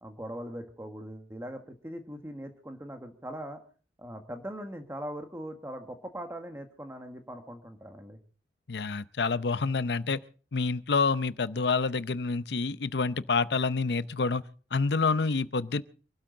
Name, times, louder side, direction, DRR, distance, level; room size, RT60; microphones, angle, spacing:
voice 1, 0.0-3.6 4.0-8.2, equal, 15° right, 1.5 m, -41 dB
voice 2, 8.7-10.2 10.5-14.4 14.7-15.8, left 4 dB, 65° left, 0.7 m, -28 dB
27.0 x 12.5 x 3.9 m
head